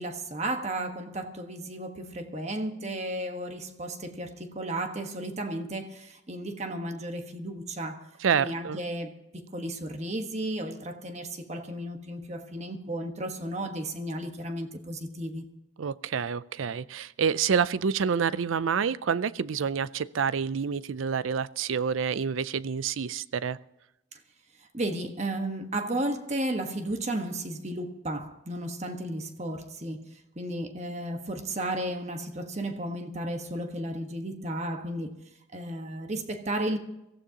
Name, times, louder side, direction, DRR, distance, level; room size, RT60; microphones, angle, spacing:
voice 1, 0.0-8.0 8.3-15.5 24.1-24.2 24.6-35.2 35.5-36.8, right 1 dB, 35° right, 1.3 m, -34 dB
Wind instrument woodwind instrument, 0.8-5.3, left 4 dB, 50° left, 1.5 m, -56 dB
voice 2, 8.2-8.8 15.8-23.6, right 6 dB, 85° right, 0.5 m, -28 dB
23.0 x 15.5 x 2.9 m
head